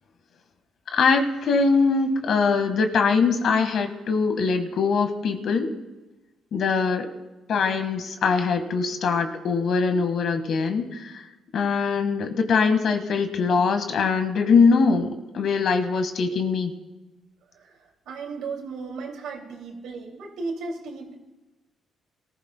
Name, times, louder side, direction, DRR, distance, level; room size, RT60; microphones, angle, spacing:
voice 1, 0.9-5.7 6.5-7.1 7.5-11.2 11.5-16.7, left 5 dB, 65° left, 7 dB, 1.6 m, -22 dB
voice 2, 18.1-21.1, right 4 dB, 85° right, 1 dB, 2.6 m, -35 dB
23.5 x 15.0 x 2.3 m, 1.1 s
cardioid pair, 90°, 0 cm